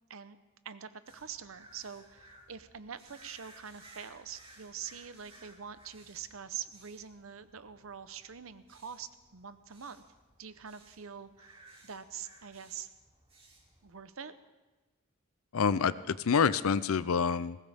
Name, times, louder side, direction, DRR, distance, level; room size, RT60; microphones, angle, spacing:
voice 1, 0.6-10.0 10.4-12.9 13.8-14.3, right 7 dB, 75° right, 12 dB, 0.8 m, -45 dB
sound 1, 1.1-14.0, right 1 dB, 30° right, 2.7 m, -59 dB
voice 2, 15.5-17.6, left 6 dB, 85° left, 16 dB, 0.5 m, -27 dB
20.0 x 17.5 x 3.5 m, 1.2 s
head